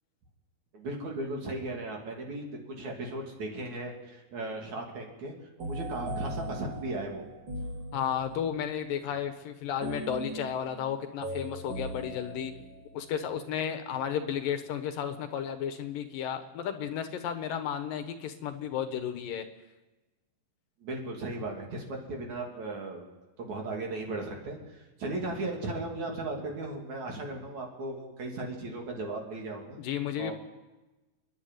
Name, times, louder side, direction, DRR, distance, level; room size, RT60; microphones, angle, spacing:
voice 1, 0.7-7.2 20.8-23.1 23.4-29.8 30.2-30.3, right 2 dB, 55° right, 0 dB, 4.2 m, -36 dB
sound 1, 5.6-8.6 9.8-13.1, right 1 dB, 35° right, 3.0 m, -39 dB
voice 2, 7.9-12.5 12.9-19.4 29.8-30.3, left 9 dB, 75° left, 8 dB, 2.9 m, -33 dB
28.5 x 11.0 x 9.3 m, 1.1 s
omnidirectional pair, 4.1 m